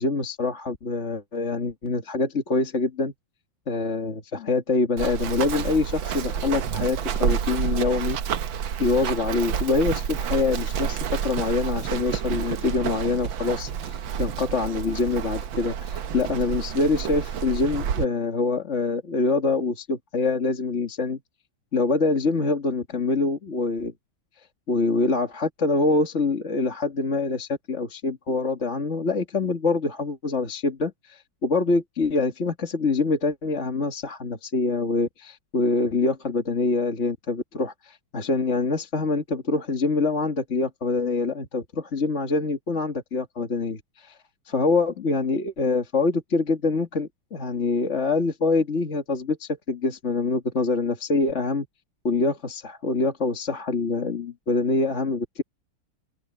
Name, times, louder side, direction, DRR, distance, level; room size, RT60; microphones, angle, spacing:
voice 1, 0.0-3.1 3.7-8.2 8.8-21.2 21.7-23.9 24.7-44.2 44.5-51.7 52.0-55.4, left 3 dB, 35° left, 2.0 m, -25 dB
Run, 5.0-18.0, right 8 dB, 65° right, 1.7 m, -29 dB
open air
omnidirectional pair, 2.4 m